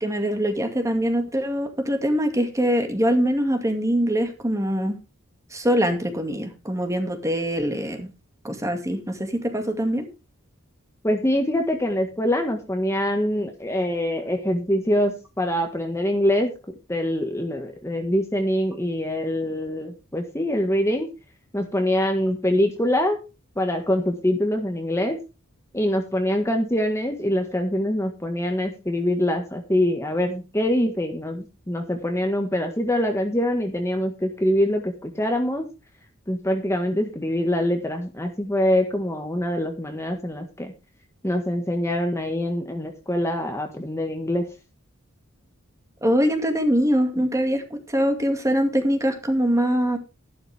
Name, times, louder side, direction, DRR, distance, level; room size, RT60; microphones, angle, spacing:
voice 1, 0.0-5.0 5.5-8.1 8.4-10.1 46.0-50.0, equal, 15° right, 5 dB, 2.2 m, -23 dB
voice 2, 11.0-16.5 16.9-21.1 21.5-23.2 23.6-25.2 25.7-35.7 36.3-40.7 41.2-44.5 47.1-47.2, left 1 dB, 15° left, 4 dB, 1.6 m, -24 dB
12.5 x 12.0 x 3.5 m, 0.29 s
head